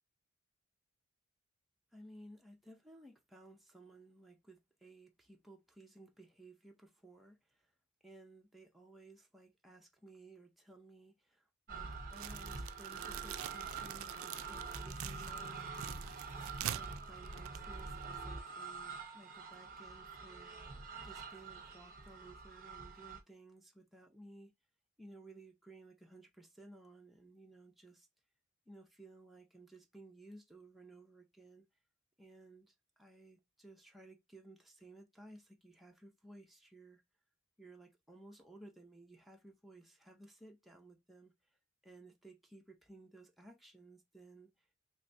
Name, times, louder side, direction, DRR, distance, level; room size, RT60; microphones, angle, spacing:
voice 1, 1.9-7.7 8.0-16.1 16.7-20.5 21.0-24.5 25.0-28.1 28.7-31.6 32.2-37.0 37.6-41.3 41.8-44.6, right 2 dB, ahead, 0.5 m, -57 dB
sound 1, 11.7-23.2, right 4 dB, 40° right, 0.7 m, -46 dB
sound 2, 12.1-18.2, right 12 dB, 70° right, 0.3 m, -46 dB
3.3 x 3.2 x 2.6 m
head